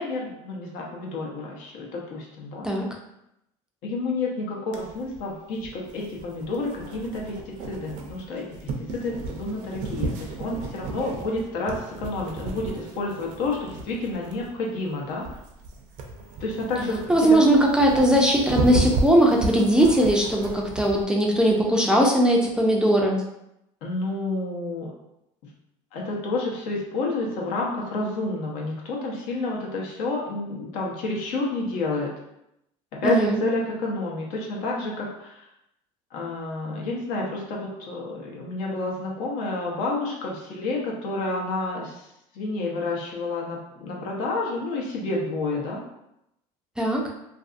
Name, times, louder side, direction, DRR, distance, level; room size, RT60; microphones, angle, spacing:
voice 1, 0.0-2.7 3.8-15.3 16.4-17.4 23.8-24.9 25.9-32.1 32.9-35.4 36.1-42.0 42.3-45.8, left 2 dB, 75° left, -2 dB, 0.7 m, -29 dB
sound 1, 4.7-21.0, right 3 dB, 60° right, 0.5 m, -33 dB
voice 2, 17.1-23.2 33.0-33.4 46.8-47.0, right 1 dB, 5° right, -1 dB, 0.4 m, -19 dB
2.5 x 2.4 x 2.4 m, 0.83 s
supercardioid pair, 105°, 14 cm